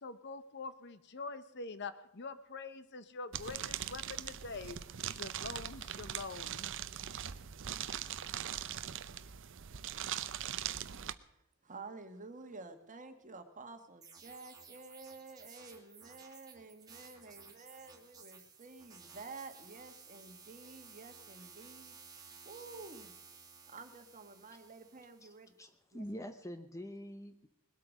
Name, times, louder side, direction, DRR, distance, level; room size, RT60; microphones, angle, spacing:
voice 1, 0.0-4.8 5.1-6.7, left 4 dB, 55° left, 12 dB, 0.9 m, -45 dB
sound 1, 3.3-11.1, right 10 dB, 60° right, 0.6 m, -41 dB
voice 2, 11.3-23.1 23.6-25.5 25.9-26.0, right 3 dB, 35° right, 7 dB, 1.5 m, -51 dB
sound 2, 14.0-25.4, right 5 dB, 20° right, 2.3 m, -56 dB
voice 3, 25.6-27.5, equal, 15° left, 8 dB, 0.7 m, -45 dB
20.5 x 8.5 x 6.4 m, 0.83 s
head